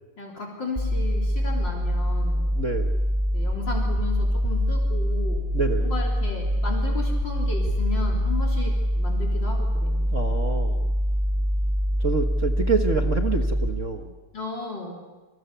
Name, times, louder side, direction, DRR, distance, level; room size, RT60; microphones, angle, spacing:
voice 1, 0.2-2.5 3.3-5.5 5.8-10.0 14.3-15.0, left 3 dB, 55° left, 1 dB, 4.2 m, -34 dB
sound 1, 0.8-13.7, equal, 15° left, 4.4 m, -24 dB
voice 2, 2.5-3.0 5.5-5.9 10.1-10.9 12.0-14.1, right 4 dB, 40° right, 4 dB, 1.5 m, -27 dB
28.0 x 26.0 x 6.9 m, 1.3 s
omnidirectional pair, 2.4 m